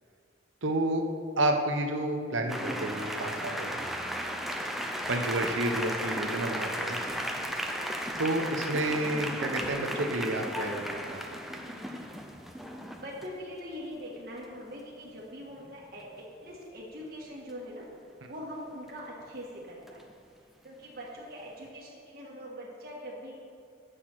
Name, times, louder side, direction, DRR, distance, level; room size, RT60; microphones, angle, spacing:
voice 1, 0.6-1.1 1.4-3.8 5.1-7.0 8.2-11.4, right 1 dB, 90° right, 3 dB, 0.8 m, -30 dB
sound 1, 2.5-13.3 15.2-15.3 15.6-15.8 19.9-20.1, equal, ahead, 0.5 m, -35 dB
voice 2, 7.0-7.8 11.7-11.9 13.0-20.0 20.6-23.3, equal, 50° right, -5 dB, 1.5 m, -43 dB
8.2 x 6.5 x 5.9 m, 2.5 s
head